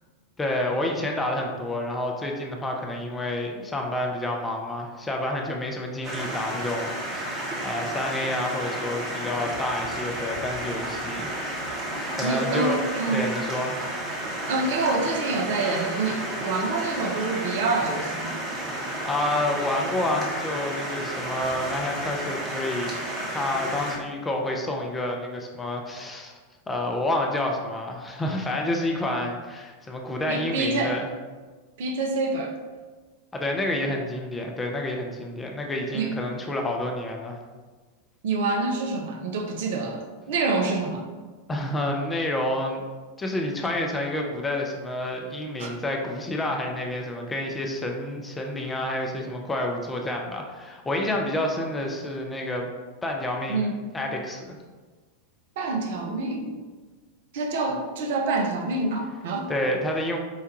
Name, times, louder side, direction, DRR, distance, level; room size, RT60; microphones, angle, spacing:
voice 1, 0.4-11.4 12.1-12.8 13.1-13.8 19.0-23.0 23.3-26.3 26.7-31.1 33.3-37.4 41.5-42.8 43.2-52.7 53.0-53.7 53.9-54.6 59.5-60.2, left 1 dB, 15° left, 1 dB, 0.4 m, -29 dB
sound 1, 6.0-24.0, right 1 dB, 25° right, 0.9 m, -32 dB
voice 2, 12.2-13.3 14.5-18.4 30.3-31.0 31.8-32.5 35.9-36.1 38.2-41.1 45.6-45.7 53.5-53.8 55.6-56.5 57.3-59.5, right 3 dB, 55° right, 2 dB, 0.5 m, -27 dB
4.6 x 2.2 x 2.9 m, 1.4 s
figure-of-eight pair, 90°, 0 cm